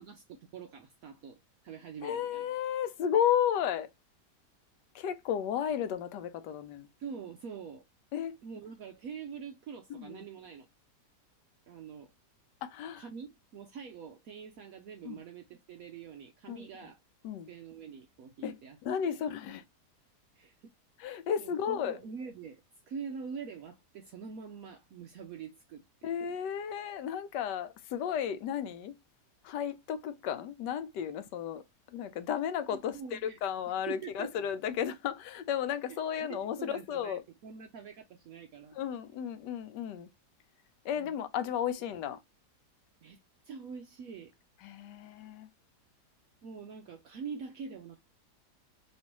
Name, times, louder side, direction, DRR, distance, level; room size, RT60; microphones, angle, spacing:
voice 1, 0.0-2.4 7.0-7.8 8.4-10.7 11.7-12.1 13.0-17.0 17.5-18.8 19.0-19.2 20.3-20.7 21.4-26.4 32.7-33.4 33.9-34.5 35.9-36.0 36.3-38.8 41.0-41.1 43.0-43.2 43.4-44.3 46.4-48.0, right 6 dB, 70° right, 0.9 m, -45 dB
voice 2, 2.0-3.9 4.9-6.9 8.1-8.4 9.9-10.3 12.6-13.1 15.0-15.2 16.5-16.7 17.2-17.5 18.4-18.6 18.8-19.6 21.0-22.0 26.0-28.9 29.4-31.6 31.9-37.2 38.7-40.1 40.8-42.2 44.6-45.5, left 9 dB, 85° left, 1.2 m, -33 dB
3.2 x 3.0 x 2.8 m
omnidirectional pair, 1.8 m